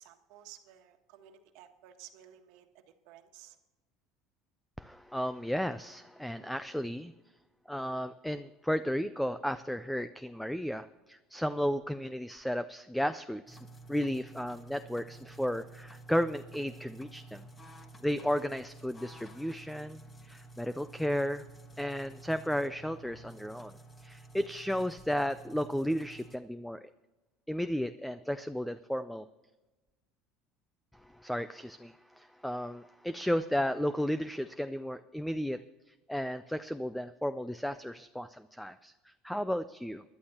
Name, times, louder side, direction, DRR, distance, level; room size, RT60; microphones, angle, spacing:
voice 1, 0.0-3.6, right 11 dB, 70° right, 6 dB, 1.4 m, -54 dB
voice 2, 4.8-7.1 7.7-13.6 13.9-17.5 18.0-21.5 21.8-26.9 27.5-29.3 30.9-35.6 36.1-40.0, equal, ahead, 13 dB, 0.4 m, -34 dB
sound 1, 13.5-26.4, right 2 dB, 20° left, 1.4 m, -51 dB
20.0 x 11.5 x 2.9 m, 1.1 s
supercardioid pair, 125°, 0 cm